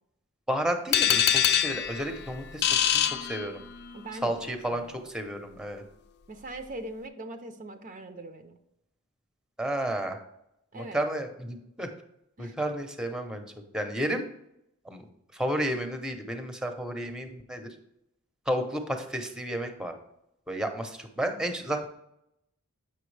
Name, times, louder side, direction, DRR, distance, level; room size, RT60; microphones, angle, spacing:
voice 1, 0.5-3.6 4.2-5.8 9.6-10.2 10.7-11.9 12.4-13.4 13.7-14.2 14.8-15.0 15.3-17.7 18.5-19.9 20.5-21.9, right 1 dB, 5° right, 6 dB, 0.7 m, -32 dB
sound 1, 0.9-3.9, left 9 dB, 50° left, 0.4 m, -25 dB
voice 2, 3.9-4.3 4.7-4.9 6.3-8.6 10.7-11.0 12.4-12.5, right 2 dB, 40° right, 7 dB, 0.5 m, -41 dB
7.8 x 5.8 x 3.3 m, 0.79 s
head